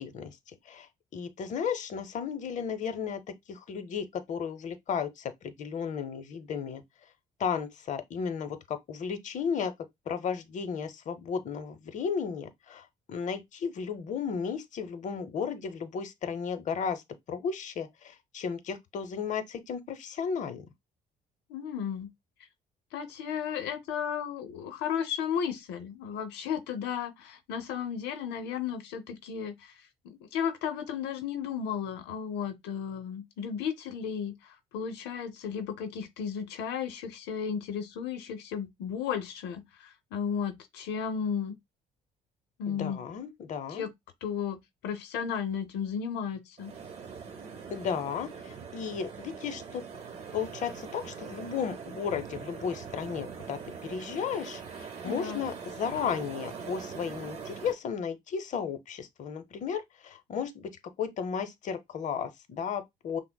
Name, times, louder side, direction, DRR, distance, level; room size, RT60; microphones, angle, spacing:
voice 1, 0.0-3.2 3.5-6.8 7.4-9.7 10.1-17.0 17.3-20.6 42.7-43.9 47.7-49.8 50.3-60.7 61.0-63.2, left 6 dB, 45° left, 0.7 m, -34 dB
voice 2, 21.5-22.1 22.9-29.7 30.0-34.3 34.7-41.6 42.6-43.0 43.7-43.9 44.2-44.6 44.8-46.7 55.0-55.4, left 7 dB, 85° left, 0.6 m, -34 dB
sound 1, 46.6-57.7, right 6 dB, 40° right, 1.2 m, -42 dB
5.7 x 2.0 x 2.2 m
cardioid pair, 110°, 17 cm